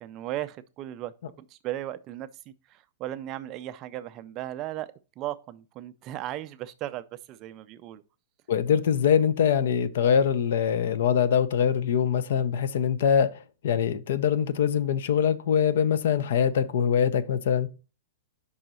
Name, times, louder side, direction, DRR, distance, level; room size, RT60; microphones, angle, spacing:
voice 1, 0.0-8.0, right 13 dB, 25° right, 0.3 m, -37 dB
voice 2, 8.5-13.3 13.6-17.7, left 8 dB, 60° left, 0.6 m, -23 dB
5.5 x 3.9 x 6.0 m
supercardioid pair, 165°, 0 cm